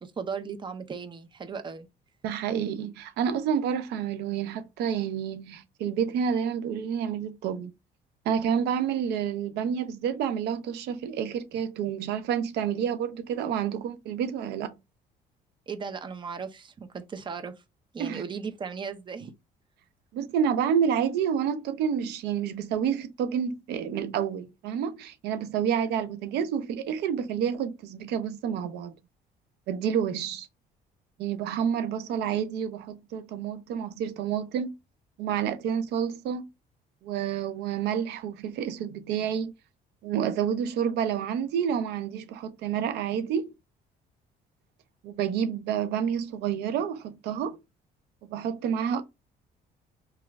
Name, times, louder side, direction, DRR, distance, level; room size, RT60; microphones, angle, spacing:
voice 1, 0.0-1.9 15.7-17.5 17.9-19.3, right 5 dB, 30° right, 0.6 m, -36 dB
voice 2, 2.2-7.7 8.3-14.7 18.0-18.2 20.1-28.9 29.7-30.5 31.2-34.7 35.2-36.5 37.0-39.5 40.0-43.5 45.0-47.6 48.3-49.0, right 8 dB, 80° right, 0.5 m, -29 dB
3.0 x 2.4 x 3.3 m
cardioid pair, 110°, 17 cm